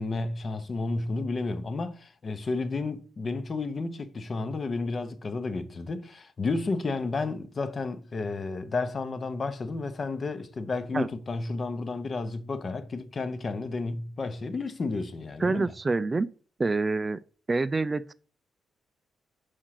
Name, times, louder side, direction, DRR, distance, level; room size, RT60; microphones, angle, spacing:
voice 1, 0.0-15.7, left 3 dB, 40° left, 0.8 m, -32 dB
voice 2, 15.4-16.3 16.6-17.2 17.5-18.1, right 3 dB, 25° right, 0.3 m, -26 dB
5.0 x 4.4 x 5.8 m
cardioid pair, 95°, 0 cm